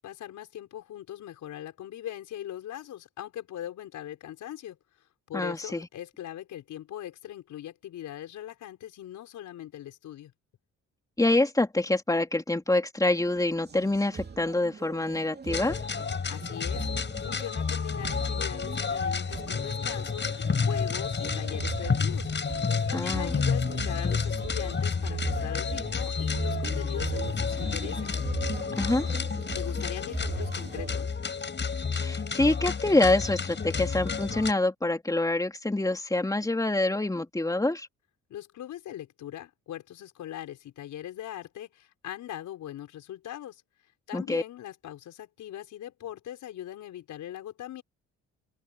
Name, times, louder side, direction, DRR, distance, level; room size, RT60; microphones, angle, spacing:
voice 1, 0.0-4.8 5.3-10.3 16.3-16.9 17.2-22.3 22.6-28.2 29.5-31.2 38.3-43.6 44.1-47.8, left 12 dB, 80° left, 5.9 m, -40 dB
voice 2, 5.3-5.9 11.2-15.8 22.9-23.4 28.8-29.1 31.9-37.9 44.1-44.4, left 2 dB, 10° left, 3.2 m, -26 dB
sound 1, 13.2-31.0, right 5 dB, 35° right, 2.6 m, -39 dB
sound 2, 15.5-34.5, left 5 dB, 35° left, 6.7 m, -30 dB
open air
cardioid pair, 90°, 30 cm